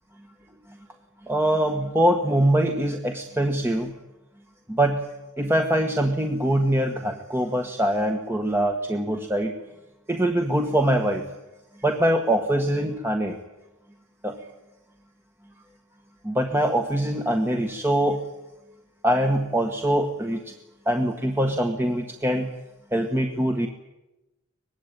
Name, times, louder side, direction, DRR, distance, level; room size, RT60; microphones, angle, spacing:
voice 1, 1.3-3.9 4.7-5.1 5.4-9.5 10.1-11.3 11.8-13.4 14.2-14.4 16.2-18.2 19.0-20.6 20.9-22.5 22.9-23.7, right 1 dB, 10° right, 4 dB, 1.4 m, -23 dB
24.0 x 21.0 x 9.0 m, 1.0 s
head